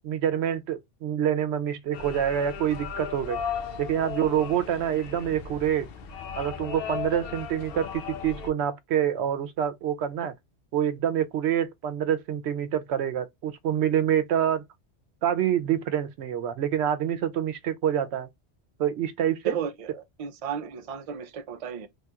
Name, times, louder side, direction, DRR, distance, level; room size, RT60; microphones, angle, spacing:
voice 1, 0.0-3.4 3.8-5.9 6.4-10.3 10.7-14.6 15.2-18.3 18.8-19.5, right 9 dB, 75° right, 0.8 m, -26 dB
sound 1, 1.9-8.5, left 7 dB, 65° left, 0.7 m, -36 dB
voice 2, 19.4-21.9, right 8 dB, 45° right, 0.4 m, -34 dB
3.3 x 2.3 x 2.7 m
omnidirectional pair, 1.1 m